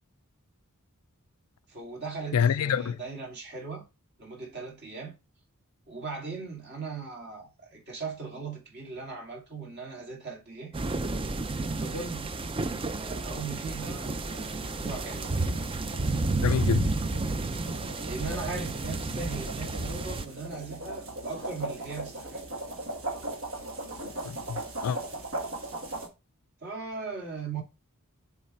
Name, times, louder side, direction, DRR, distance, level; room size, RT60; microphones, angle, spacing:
voice 1, 1.7-3.9 4.2-5.2 5.9-10.7 11.8-12.3 12.9-15.3 18.0-22.4 26.6-27.6, right 4 dB, 50° right, 2.4 m, -39 dB
voice 2, 2.3-3.0 16.4-16.9 23.8-24.0 24.2-25.0, left 7 dB, 85° left, 0.4 m, -27 dB
sound 1, 10.7-20.2, right 3 dB, 25° right, 0.4 m, -31 dB
sound 2, 14.1-26.1, right 2 dB, 65° right, 1.5 m, -39 dB
7.3 x 3.3 x 4.4 m
head